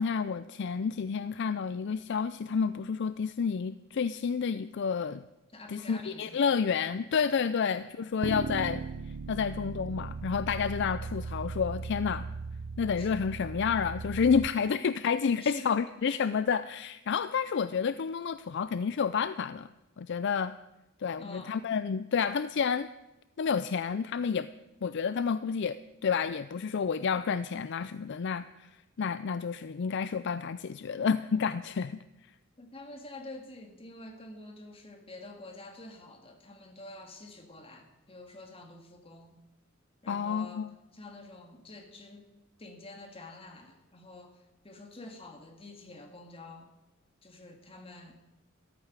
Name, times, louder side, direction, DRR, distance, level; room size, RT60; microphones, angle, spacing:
voice 1, 0.0-5.2 5.7-8.8 9.3-12.3 12.8-19.7 20.0-20.6 21.0-22.9 23.4-24.5 24.8-32.0 40.1-40.7, left 6 dB, 60° left, 14 dB, 0.4 m, -30 dB
voice 2, 5.5-6.5 7.7-7.9 13.0-13.1 14.8-14.9 15.4-15.7 16.0-16.2 21.2-21.6 32.6-39.4 40.0-40.7 40.9-42.3 42.6-46.7 47.2-48.1, left 2 dB, 30° left, 4 dB, 2.1 m, -47 dB
sound 1, 8.2-14.5, right 4 dB, 85° right, 0.5 m, -38 dB
14.5 x 13.5 x 6.6 m, 0.99 s
head